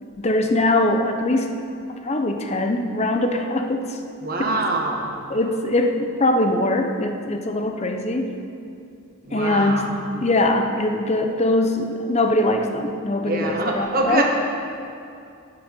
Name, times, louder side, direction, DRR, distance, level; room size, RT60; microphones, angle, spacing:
voice 1, 0.0-4.0 4.4-4.6 5.3-8.4 9.3-9.9 10.1-14.2, left 2 dB, 30° left, 5 dB, 0.7 m, -22 dB
voice 2, 4.2-5.1 9.2-9.9 13.2-14.2, right 2 dB, 40° right, 0 dB, 1.5 m, -24 dB
11.5 x 10.0 x 5.3 m, 2.5 s
head